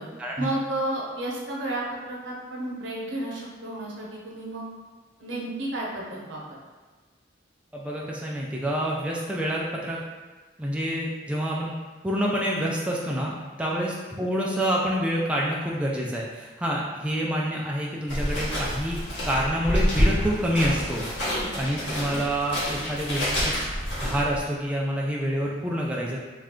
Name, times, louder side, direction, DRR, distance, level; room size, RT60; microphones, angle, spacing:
voice 1, 0.4-4.6 5.2-6.4 13.7-13.8 21.3-21.5, right 1 dB, 80° right, -3 dB, 0.8 m, -32 dB
voice 2, 7.7-10.0 10.6-11.7 12.0-21.0 21.6-23.5 24.0-26.2, equal, 5° right, -4 dB, 0.3 m, -27 dB
sound 1, 18.1-24.4, equal, 70° left, 1.3 m, -28 dB
3.2 x 2.4 x 3.6 m, 1.3 s
head